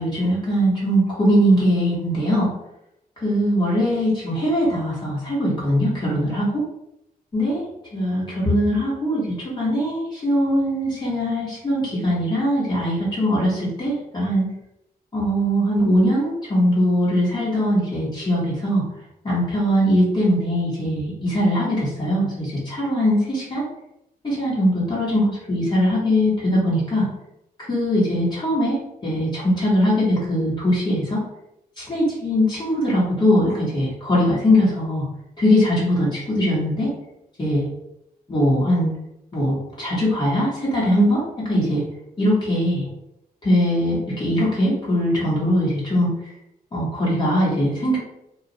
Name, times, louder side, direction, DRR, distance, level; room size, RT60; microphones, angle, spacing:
voice 1, 0.0-2.5 3.2-6.6 7.3-7.6 7.9-14.5 15.1-18.8 19.2-23.6 24.2-27.1 27.7-31.2 31.8-35.0 35.4-36.9 37.4-37.7 38.3-38.9 39.3-41.8 42.2-42.8 43.4-46.1 46.7-48.0, equal, 30° left, -7 dB, 1.1 m, -21 dB
2.4 x 2.2 x 3.8 m, 0.84 s
wide cardioid pair, 170°, 15 cm